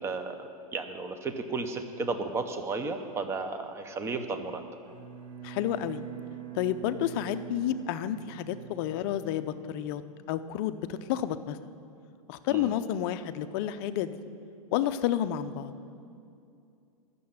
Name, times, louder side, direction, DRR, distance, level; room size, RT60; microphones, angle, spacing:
voice 1, 0.0-4.6 12.5-12.7, right 3 dB, 15° right, 8 dB, 0.7 m, -34 dB
Bowed string instrument, 4.8-9.6, right 11 dB, 70° right, 2.3 m, -44 dB
voice 2, 5.4-6.0 6.5-10.0 10.3-11.6 12.3-14.2 14.7-15.7, left 11 dB, 40° left, 11 dB, 0.5 m, -30 dB
11.5 x 6.8 x 8.7 m, 2.5 s
hypercardioid pair, 145°, 20 cm